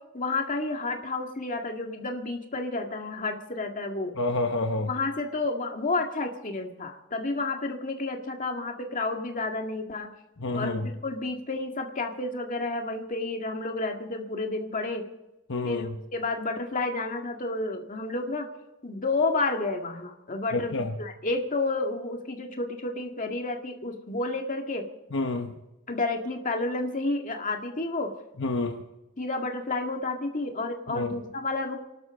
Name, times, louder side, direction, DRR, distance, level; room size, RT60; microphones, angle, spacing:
voice 1, 0.1-4.1 4.9-10.1 10.5-15.0 15.6-18.5 18.8-24.8 25.9-28.1 29.2-31.8, left 3 dB, 35° left, 3 dB, 1.9 m, -30 dB
voice 2, 4.2-4.9 10.4-10.9 15.5-15.9 20.5-20.9 25.1-25.5 28.4-28.8 30.9-31.1, left 2 dB, 55° left, 4 dB, 1.1 m, -28 dB
28.0 x 12.0 x 3.7 m, 1.0 s
head